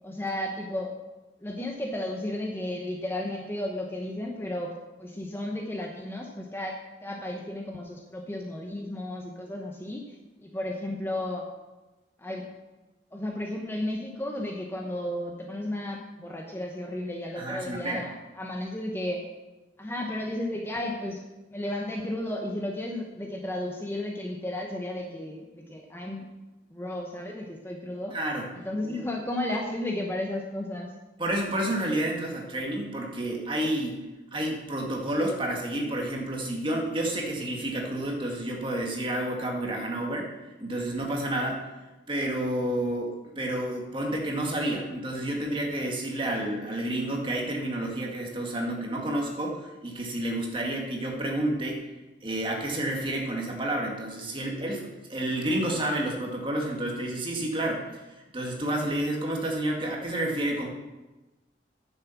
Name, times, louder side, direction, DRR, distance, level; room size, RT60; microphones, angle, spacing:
voice 1, 0.0-0.9 1.4-4.7 5.0-11.5 12.2-12.5 13.1-19.2 19.8-21.2 21.5-26.3 26.7-28.2 28.5-30.9, left 1 dB, 10° left, 1 dB, 0.9 m, -33 dB
voice 2, 17.4-18.0 28.1-28.5 28.9-29.0 31.2-34.0 34.3-40.3 40.6-41.6 42.1-51.8 52.2-58.0 58.3-60.7, right 1 dB, 25° right, 0 dB, 2.0 m, -30 dB
9.7 x 7.2 x 7.1 m, 1.1 s
head